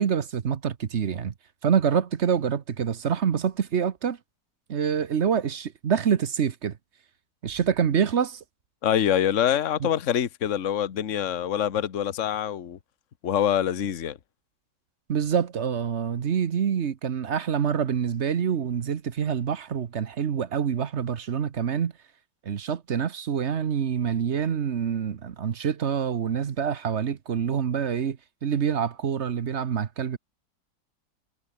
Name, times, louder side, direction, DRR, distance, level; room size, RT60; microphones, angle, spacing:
voice 1, 0.0-1.3 1.6-4.2 4.7-6.7 7.4-8.4 9.8-9.9 15.1-21.9 22.4-30.2, right 7 dB, 45° right, 1.0 m, -26 dB
voice 2, 8.8-12.8 13.2-14.2, left 10 dB, 45° left, 1.4 m, -25 dB
omnidirectional pair, 2.0 m